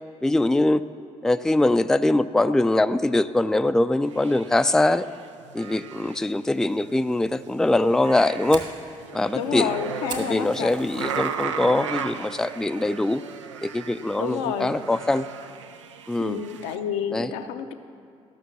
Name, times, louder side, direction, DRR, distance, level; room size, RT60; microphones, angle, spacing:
voice 1, 0.2-0.9 1.2-5.1 5.5-8.6 9.1-9.7 10.2-13.2 13.6-15.3 16.1-16.4 17.1-17.3, left 2 dB, 5° left, 11 dB, 0.4 m, -22 dB
sound 1, 4.1-6.3 6.6-7.6 7.9-16.8, right 7 dB, 90° right, 0.4 m, -36 dB
Fire, 7.9-11.5 11.9-12.3 12.6-12.8 13.3-13.6, right 4 dB, 50° right, 2.0 m, -40 dB
voice 2, 9.3-11.3 14.2-14.7 16.2-17.7, left 7 dB, 75° left, 6 dB, 0.6 m, -30 dB
14.0 x 6.1 x 7.0 m, 2.5 s
hypercardioid pair, 45°, 15 cm